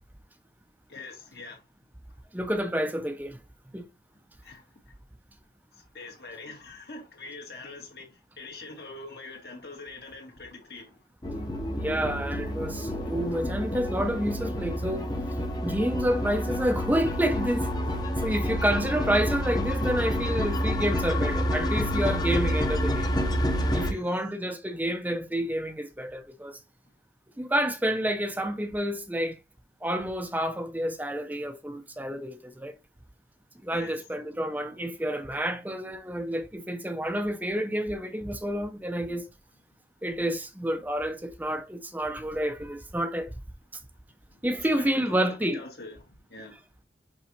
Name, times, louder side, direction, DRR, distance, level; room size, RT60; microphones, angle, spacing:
voice 1, 0.9-1.6 4.4-5.0 5.7-11.0 23.7-24.2 33.7-34.0 44.6-46.5, left 3 dB, 60° left, 2.1 m, -44 dB
voice 2, 2.3-3.4 3.7-3.9 11.7-15.1 15.6-17.7 18.2-23.1 23.7-26.6 27.4-29.4 29.8-32.7 33.6-39.3 40.0-43.3 43.7-43.8 44.4-45.6, equal, 10° right, 0.6 m, -29 dB
sound 1, 11.2-23.9, equal, 25° left, 0.9 m, -28 dB
5.9 x 5.3 x 3.0 m
head